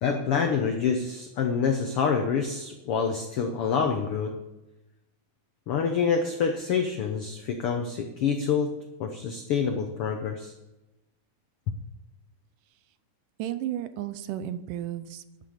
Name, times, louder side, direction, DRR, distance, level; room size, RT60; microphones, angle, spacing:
voice 1, 0.0-4.4 5.7-10.5, left 6 dB, 85° left, 5 dB, 1.2 m, -27 dB
voice 2, 13.4-15.5, right 11 dB, 80° right, 12 dB, 2.3 m, -33 dB
11.5 x 6.8 x 7.2 m, 0.97 s
omnidirectional pair, 3.8 m